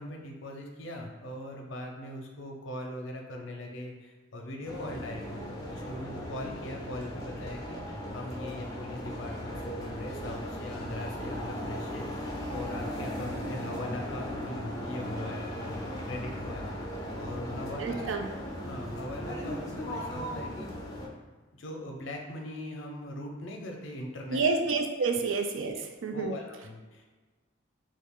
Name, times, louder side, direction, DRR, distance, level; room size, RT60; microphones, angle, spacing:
voice 1, 0.0-12.1 12.5-16.7 17.2-18.2 18.6-20.7 21.5-24.5 25.0-25.1 25.7-25.8 26.1-27.0, left 1 dB, 75° left, 1 dB, 0.6 m, -40 dB
sound 1, 4.6-21.1, equal, 20° left, 0.5 m, -37 dB
voice 2, 17.8-18.2 24.3-25.8 26.0-26.3, right 4 dB, 85° right, 4 dB, 0.4 m, -28 dB
3.1 x 2.4 x 3.6 m, 1.3 s
head